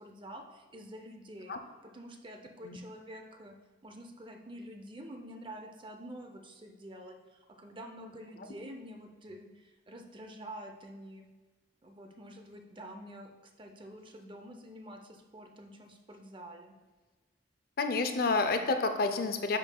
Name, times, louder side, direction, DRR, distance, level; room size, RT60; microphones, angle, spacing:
voice 1, 0.0-1.5 1.8-3.6 3.8-11.3 11.8-16.7, equal, 30° right, 4 dB, 0.6 m, -48 dB
voice 2, 17.8-19.6, left 3 dB, 55° left, 7 dB, 0.5 m, -29 dB
10.0 x 5.4 x 2.3 m, 1.3 s
head